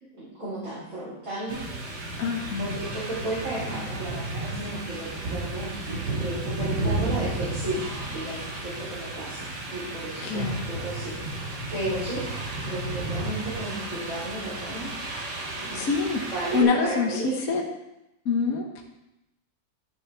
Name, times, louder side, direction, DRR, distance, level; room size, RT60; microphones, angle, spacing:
voice 1, 0.1-1.6 2.6-12.2 12.6-14.9 15.4-17.5, right 1 dB, 50° right, -10 dB, 4.0 m, -34 dB
sound 1, 1.5-16.6, right 2 dB, 75° right, 2.2 m, -33 dB
voice 2, 2.2-2.7 10.2-10.5 15.7-16.2 16.5-17.1 17.5-17.6 18.3-18.8, left 5 dB, 60° left, 1 dB, 1.4 m, -25 dB
12.0 x 7.0 x 3.4 m, 0.90 s
omnidirectional pair, 1.8 m